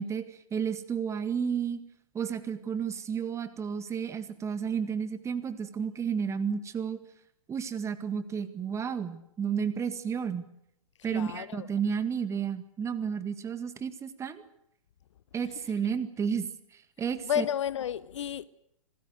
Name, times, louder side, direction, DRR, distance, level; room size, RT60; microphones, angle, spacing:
voice 1, 0.0-1.8 2.1-7.0 7.5-10.5 11.0-14.4 15.3-17.4, right 7 dB, 15° right, 1.9 m, -32 dB
voice 2, 11.1-11.7 17.2-18.5, left 9 dB, 55° left, 0.9 m, -31 dB
26.5 x 18.5 x 7.9 m
figure-of-eight pair, 105°, 18 cm